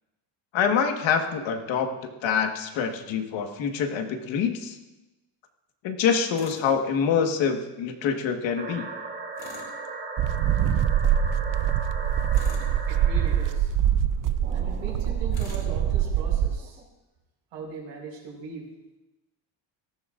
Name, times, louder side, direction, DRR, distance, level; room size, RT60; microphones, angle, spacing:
voice 1, 0.5-1.9 2.2-4.8 5.8-8.9, left 6 dB, 70° left, 4 dB, 1.6 m, -25 dB
Tools, 6.4-6.7 9.4-9.8 12.3-12.8 15.3-15.7, left 4 dB, 50° left, 3.8 m, -44 dB
sound 1, 8.6-13.6 14.4-16.9, right 3 dB, 20° right, 1.3 m, -38 dB
sound 2, 10.2-16.6, right 9 dB, 45° right, 0.4 m, -24 dB
voice 2, 12.9-13.7 14.5-16.8 17.5-18.7, right 3 dB, 80° right, -2 dB, 5.3 m, -39 dB
18.5 x 14.0 x 2.5 m, 1.0 s
cardioid pair, 130°, 47 cm